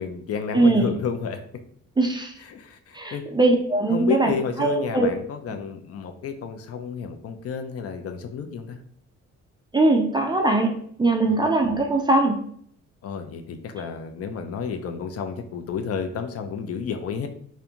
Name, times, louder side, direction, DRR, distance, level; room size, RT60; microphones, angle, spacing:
voice 1, 0.0-1.4 2.4-3.3 3.9-8.8 11.3-11.4 13.0-17.3, left 6 dB, 50° left, 7 dB, 0.4 m, -31 dB
voice 2, 0.5-0.9 2.0-2.3 2.9-4.3 4.6-5.1 9.7-10.7 11.0-12.4, right 2 dB, 15° right, 2 dB, 0.4 m, -20 dB
2.5 x 2.1 x 2.8 m, 0.63 s
cardioid pair, 90°, 30 cm